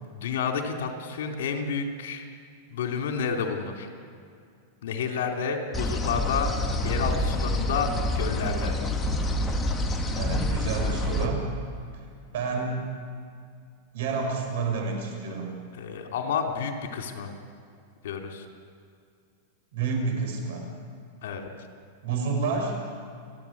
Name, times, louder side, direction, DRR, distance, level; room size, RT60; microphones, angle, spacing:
voice 1, 0.1-2.3 2.7-3.9 4.8-6.5 6.8-8.8 15.7-17.3 18.0-18.4 21.2-21.5, left 6 dB, 80° left, 3 dB, 3.1 m, -30 dB
sound 1, 5.7-11.3, left 1 dB, 10° left, 1.9 m, -27 dB
voice 2, 10.1-11.5 11.9-12.0 12.3-12.7 13.9-15.6 19.7-20.7 22.0-22.8, right 4 dB, 65° right, 3 dB, 5.9 m, -29 dB
30.0 x 11.5 x 8.7 m, 2.3 s
supercardioid pair, 160°, 0 cm